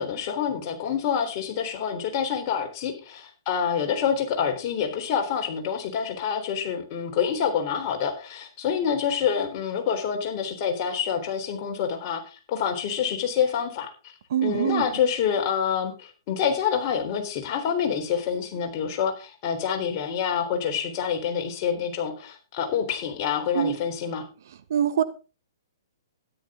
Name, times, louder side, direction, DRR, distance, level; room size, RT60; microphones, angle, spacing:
voice 1, 0.0-13.9 14.4-24.2, left 7 dB, 35° left, 3.9 m, -27 dB
voice 2, 14.3-14.8 23.5-23.8 24.7-25.0, right 10 dB, 55° right, 1.3 m, -23 dB
13.0 x 11.0 x 3.8 m
figure-of-eight pair, 120°, 2 cm